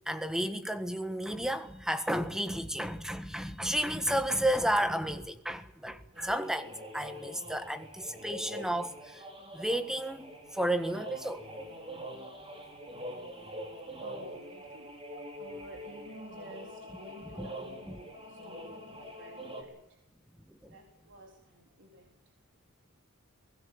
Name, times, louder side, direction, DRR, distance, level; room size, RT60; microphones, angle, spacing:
voice 1, 0.1-9.2 9.5-11.5 17.4-17.5 17.9-18.0 20.5-20.8, equal, ahead, 1.5 m, -32 dB
sound 1, 6.1-19.6, equal, 25° right, 4.7 m, -44 dB
voice 2, 14.0-14.9 15.4-20.0 20.7-22.2, right 1 dB, 60° right, 4.0 m, -50 dB
23.5 x 18.0 x 8.8 m
head